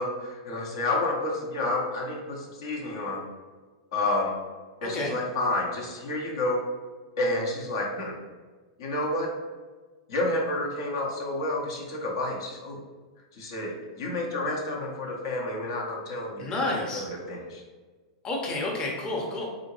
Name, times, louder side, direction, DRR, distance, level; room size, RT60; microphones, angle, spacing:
voice 1, 0.0-3.3 3.9-4.3 4.8-6.6 7.2-8.1 8.8-9.3 10.1-12.8 13.3-17.6, left 2 dB, 65° left, -2 dB, 0.7 m, -30 dB
voice 2, 4.8-5.1 16.4-17.1 18.2-19.5, left 2 dB, 30° left, -2 dB, 0.7 m, -30 dB
3.8 x 2.1 x 2.9 m, 1.4 s
hypercardioid pair, 105°, 3 cm